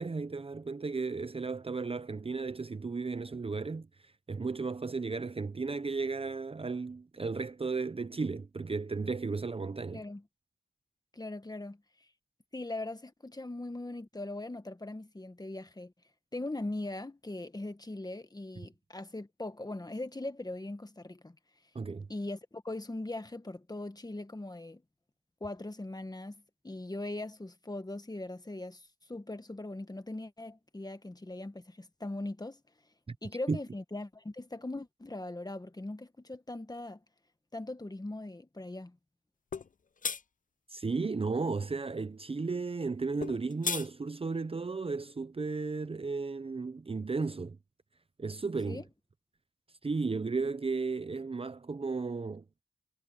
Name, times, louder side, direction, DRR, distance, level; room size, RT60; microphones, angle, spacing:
voice 1, 0.0-3.9 4.3-10.0 21.7-22.1 33.1-33.2 33.5-33.6 40.7-47.6 48.2-48.8 49.8-52.4, right 4 dB, 35° right, 0.6 m, -34 dB
voice 2, 11.1-11.8 12.5-15.9 16.3-21.3 22.1-24.8 25.4-32.6 33.2-37.0 37.5-39.0 48.7-48.8, left 2 dB, 25° left, 1.6 m, -40 dB
sound 1, 39.5-39.7 40.0-40.2 43.2-43.9, left 5 dB, 50° left, 0.6 m, -33 dB
wide cardioid pair, 70°, 17 cm